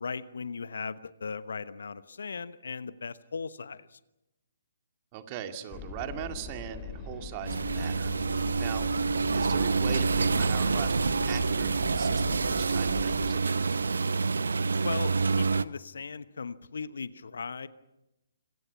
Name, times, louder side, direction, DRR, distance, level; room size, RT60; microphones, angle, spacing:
voice 1, 0.0-4.0 14.8-17.7, left 5 dB, 60° left, 15 dB, 1.1 m, -38 dB
voice 2, 5.1-8.9 9.3-13.4, right 10 dB, 30° right, 7 dB, 2.2 m, -40 dB
sound 1, 5.7-13.3, left 5 dB, 15° left, 4.3 m, -40 dB
sound 2, 7.4-15.6, right 4 dB, 65° right, 0.8 m, -27 dB
27.0 x 25.5 x 5.9 m, 0.95 s
figure-of-eight pair, 135°, 0 cm